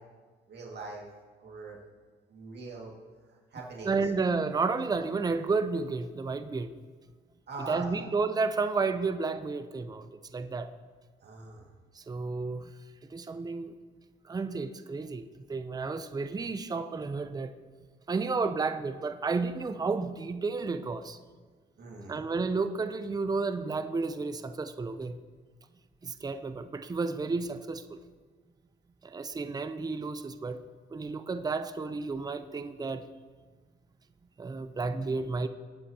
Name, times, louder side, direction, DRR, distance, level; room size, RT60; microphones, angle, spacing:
voice 1, 0.5-1.1 1.4-1.8 2.3-2.9 3.3-4.0 7.5-8.1 11.2-11.7 21.8-22.2, right 3 dB, 60° right, -1 dB, 2.1 m, -42 dB
voice 2, 3.8-6.8 7.6-10.7 12.0-12.7 13.1-13.8 14.2-15.2 15.5-17.5 18.1-21.2 22.1-25.2 26.0-28.0 29.0-30.6 30.9-33.1 34.4-35.5, right 4 dB, 20° right, 9 dB, 0.6 m, -31 dB
20.5 x 8.3 x 2.9 m, 1.5 s
cardioid pair, 90°, 20 cm